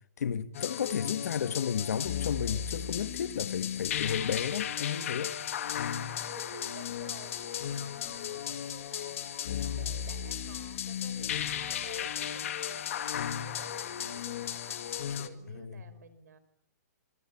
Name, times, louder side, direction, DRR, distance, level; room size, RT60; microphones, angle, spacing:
voice 1, 0.2-5.3 15.5-15.8, left 7 dB, 65° left, 1.6 m, -33 dB
sound 1, 0.5-15.3, left 9 dB, 50° left, 2.1 m, -35 dB
voice 2, 5.6-16.4, right 6 dB, 70° right, 5.1 m, -52 dB
26.0 x 19.5 x 9.9 m
hypercardioid pair, 165°, 9 cm